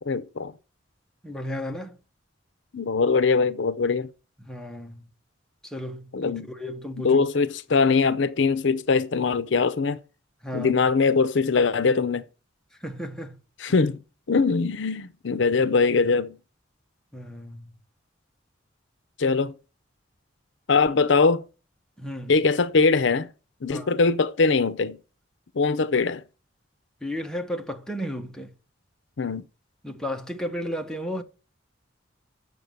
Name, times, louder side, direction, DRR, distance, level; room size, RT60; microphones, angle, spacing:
voice 1, 0.0-0.5 2.7-4.1 6.1-6.5 7.0-10.0 10.5-12.2 13.6-14.0 14.3-16.4 19.2-19.5 20.7-21.4 22.3-23.3 23.6-25.0 25.6-26.2 29.2-29.4, left 4 dB, 70° left, 0.6 m, -22 dB
voice 2, 1.2-2.0 4.4-5.1 5.6-7.2 10.4-10.7 12.8-13.4 13.7-13.8 17.1-17.8 22.0-22.3 23.7-23.9 27.0-28.5 29.8-31.2, equal, 5° left, 1.2 m, -34 dB
8.0 x 6.6 x 6.8 m
head